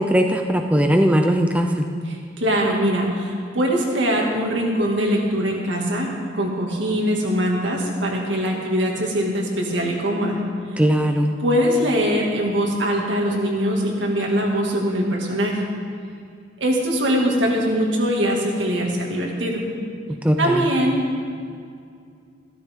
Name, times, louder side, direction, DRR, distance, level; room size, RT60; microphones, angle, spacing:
voice 1, 0.0-1.8 10.8-11.3 20.2-20.7, equal, 5° right, 4 dB, 0.5 m, -19 dB
voice 2, 2.0-10.4 11.4-15.6 16.6-19.6 20.4-21.2, equal, 80° right, -1 dB, 2.1 m, -22 dB
14.5 x 13.0 x 3.7 m, 2.3 s
head